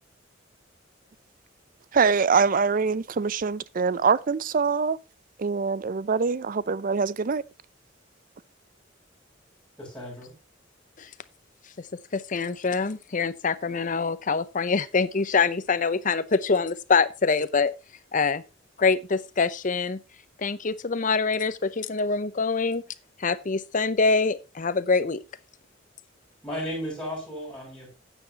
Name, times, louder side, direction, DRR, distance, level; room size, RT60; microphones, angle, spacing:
voice 1, 1.9-5.0 5.4-7.4, right 5 dB, 45° right, 0.5 m, -24 dB
voice 2, 9.8-10.3 26.4-27.9, equal, 5° left, 6.7 m, -34 dB
voice 3, 12.1-17.7 18.1-18.4 18.8-20.0 20.4-22.8 23.2-25.2, left 4 dB, 45° left, 0.7 m, -25 dB
13.0 x 9.1 x 2.9 m
head